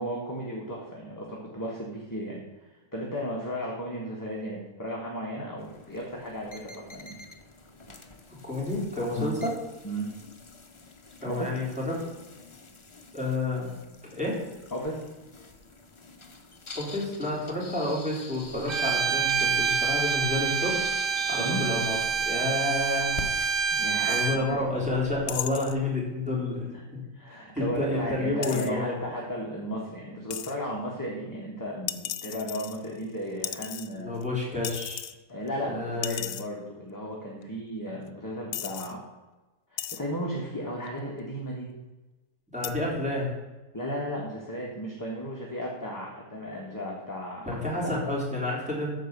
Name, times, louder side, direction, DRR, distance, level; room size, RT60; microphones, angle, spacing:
voice 1, 0.0-7.2 9.2-9.3 9.8-10.1 11.2-11.5 14.7-15.0 21.4-21.6 23.7-24.6 26.7-26.8 27.1-34.1 35.3-39.0 39.7-41.7 43.7-47.9, equal, 15° left, -3 dB, 1.5 m, -35 dB
sound 1, 5.6-23.5, left 3 dB, 30° left, 0.6 m, -46 dB
voice 2, 8.4-9.5 11.2-12.0 13.1-13.7 14.1-14.4 16.8-20.8 21.3-23.2 24.1-27.0 27.5-29.0 33.9-35.0 35.6-36.2 42.5-43.3 47.5-48.9, left 2 dB, 5° right, -5 dB, 3.4 m, -30 dB
Bowed string instrument, 18.7-24.4, right 6 dB, 50° right, 0.7 m, -27 dB
sound 2, 24.1-24.3 25.3-25.8 28.4-28.7 30.3-30.5 31.9-33.0 33.4-34.2 34.6-35.1 35.5-35.6 36.0-36.5 37.4-37.5 38.1-38.2 38.5-38.9 39.8-40.0 40.9-41.2 42.6-42.7, left 12 dB, 75° left, 1.0 m, -35 dB
14.0 x 4.7 x 6.7 m, 1.1 s
omnidirectional pair, 1.6 m